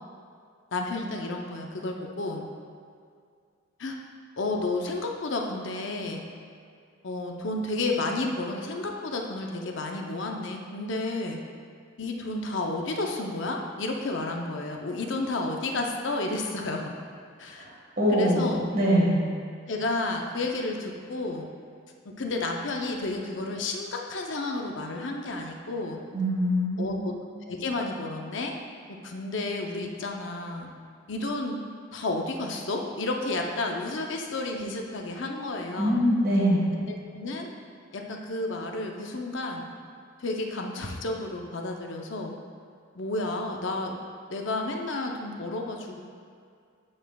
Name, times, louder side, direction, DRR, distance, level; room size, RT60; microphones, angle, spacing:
voice 1, 0.7-2.5 3.8-4.0 4.4-6.2 7.0-11.4 12.0-16.9 17.4-17.7 18.1-18.7 19.7-21.5 22.0-26.0 26.8-27.1 27.5-28.5 28.9-30.7 31.1-31.6 31.9-36.1 36.8-37.5 37.9-39.7 40.2-42.3 43.0-43.9 44.3-46.0, left 2 dB, 60° left, 2 dB, 0.7 m, -31 dB
voice 2, 18.0-19.1 26.1-27.0 35.8-36.6, equal, 45° right, -4 dB, 1.6 m, -23 dB
8.6 x 7.0 x 2.3 m, 2.3 s
head